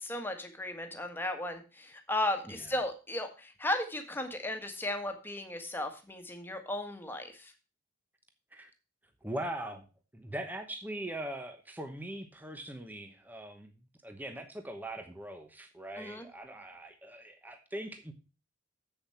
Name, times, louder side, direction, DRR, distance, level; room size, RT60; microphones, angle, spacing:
voice 1, 0.0-7.5 16.0-16.3, left 1 dB, 10° left, 5 dB, 1.5 m, -35 dB
voice 2, 9.2-9.8 10.1-13.7 14.0-18.1, right 1 dB, 10° right, 6 dB, 0.9 m, -41 dB
7.9 x 7.0 x 5.7 m, 0.32 s
head